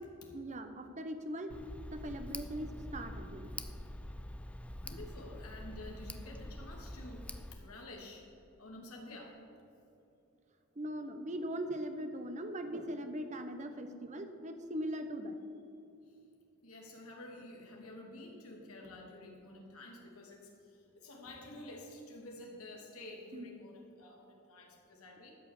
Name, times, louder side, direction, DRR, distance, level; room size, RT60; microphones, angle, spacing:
voice 1, 0.3-1.5 1.9-3.5 10.8-15.4 23.3-23.5, equal, 35° right, 8 dB, 0.8 m, -40 dB
Tick, 1.5-7.5, left 1 dB, 5° left, 0.3 m, -45 dB
voice 2, 4.7-8.3 8.6-9.4 16.1-16.2 16.6-25.3, left 1 dB, 85° left, 0 dB, 2.3 m, -50 dB
13.0 x 5.5 x 8.3 m, 2.7 s
head